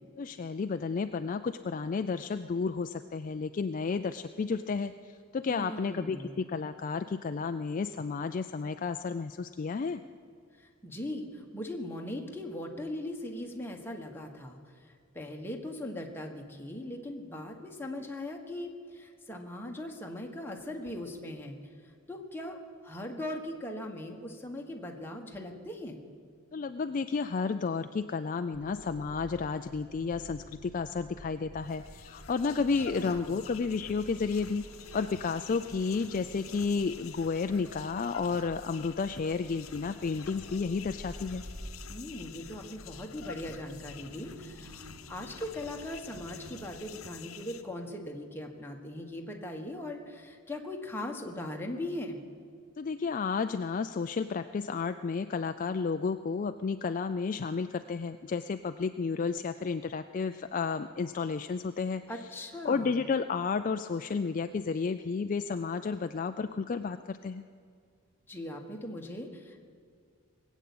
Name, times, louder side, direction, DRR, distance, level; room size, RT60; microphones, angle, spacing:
voice 1, 0.2-10.0 26.5-34.6 34.9-41.4 52.8-62.0 62.6-67.4, left 5 dB, 35° left, 9 dB, 0.3 m, -32 dB
voice 2, 5.5-6.4 10.6-21.6 21.8-26.0 32.4-33.5 41.9-52.2 62.1-63.0 68.3-69.6, left 1 dB, 10° left, 1 dB, 1.4 m, -40 dB
sound 1, 28.5-46.8, right 1 dB, 85° right, 1.5 m, -51 dB
sound 2, 31.5-47.6, left 8 dB, 70° left, 0.9 m, -49 dB
Rain, 34.0-41.7, equal, 35° right, 1.8 m, -52 dB
20.0 x 8.2 x 8.5 m, 2.2 s
head